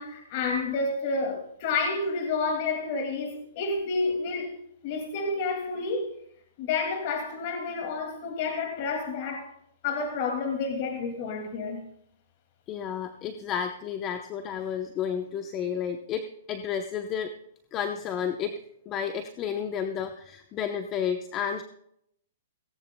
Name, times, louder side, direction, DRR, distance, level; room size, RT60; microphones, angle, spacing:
voice 1, 0.0-4.5 4.8-6.1 6.6-9.5 9.8-11.8, left 4 dB, 45° left, 3 dB, 2.3 m, -30 dB
voice 2, 12.7-17.3 17.7-18.6 18.9-21.6, left 8 dB, 25° left, 7 dB, 0.8 m, -31 dB
17.5 x 17.0 x 2.3 m, 0.71 s
hypercardioid pair, 145°, 0 cm